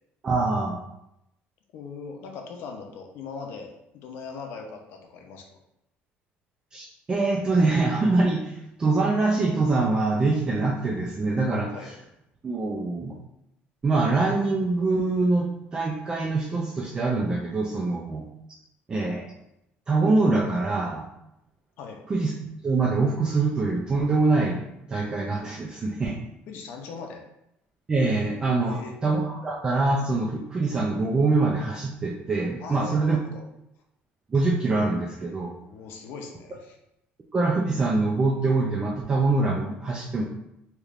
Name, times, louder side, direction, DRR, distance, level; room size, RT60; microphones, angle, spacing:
voice 1, 0.2-0.8 6.7-11.9 12.4-13.2 13.8-18.3 18.9-19.3 19.9-21.0 22.1-22.3 22.6-24.6 24.9-26.2 27.9-33.2 34.3-35.5 37.3-40.2, right 3 dB, 20° right, -2 dB, 0.3 m, -24 dB
voice 2, 1.7-5.4 11.7-11.9 21.8-22.0 26.5-27.2 28.6-28.9 32.6-33.4 35.6-36.8, left 5 dB, 65° left, 3 dB, 0.6 m, -40 dB
3.3 x 2.9 x 2.4 m, 0.84 s
cardioid pair, 165°, 4 cm